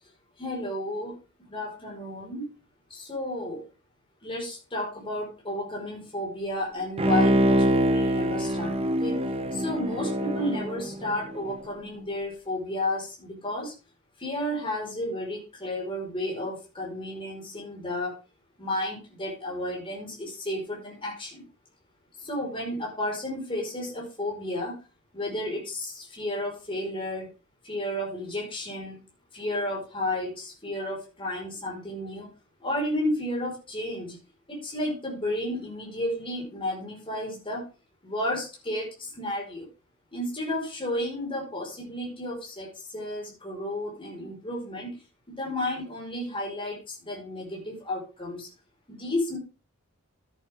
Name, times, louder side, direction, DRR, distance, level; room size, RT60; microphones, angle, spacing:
voice 1, 0.4-1.1 1.5-2.5 2.9-3.6 4.2-8.7 9.0-9.2 9.5-13.7 14.2-18.1 18.6-21.4 22.2-24.7 25.1-27.3 27.6-29.0 29.3-32.3 32.6-34.2 34.5-37.7 38.0-39.7 40.1-45.0 45.3-48.5 48.9-49.4, left 1 dB, 25° left, -3 dB, 5.1 m, -32 dB
Bowed string instrument, 7.0-11.6 12.0-12.1, equal, 25° right, 0.9 m, -25 dB
13.0 x 8.5 x 3.7 m, 0.32 s
head